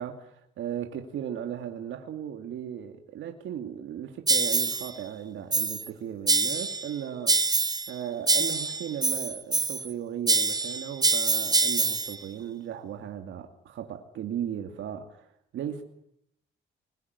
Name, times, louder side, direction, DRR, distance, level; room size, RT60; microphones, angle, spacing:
voice 1, 0.0-7.5 7.9-15.8, right 9 dB, 80° right, 2.6 m, -36 dB
sound 1, 4.3-4.9 5.5-5.9 6.3-6.9 7.3-7.9 8.3-9.9 10.3-12.2, right 3 dB, 20° right, 1.0 m, -25 dB
25.5 x 21.5 x 9.7 m
cardioid pair, 90°, 20 cm